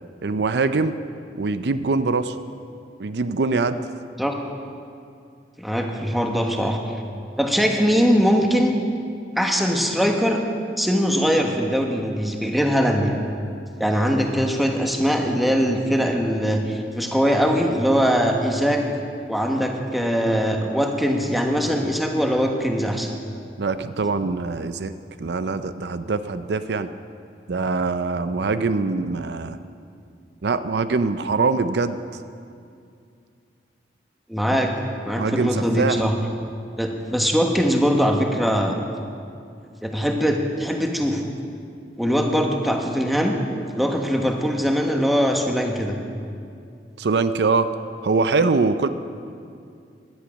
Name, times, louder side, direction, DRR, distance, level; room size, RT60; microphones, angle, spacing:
voice 1, 0.2-0.9 1.4-2.4 3.0-3.8 23.6-24.9 25.2-26.9 27.5-29.6 30.4-32.0 34.5-34.6 35.2-36.0 47.0-47.7 48.0-48.9, right 4 dB, 70° right, 11 dB, 0.5 m, -23 dB
voice 2, 5.6-6.8 7.4-8.7 9.4-10.4 10.8-13.2 13.8-18.8 19.3-23.1 34.3-34.7 35.0-36.1 36.8-38.7 39.8-41.3 42.0-43.4 43.7-46.0, equal, ahead, 2 dB, 1.3 m, -21 dB
17.0 x 11.5 x 6.3 m, 2.4 s
head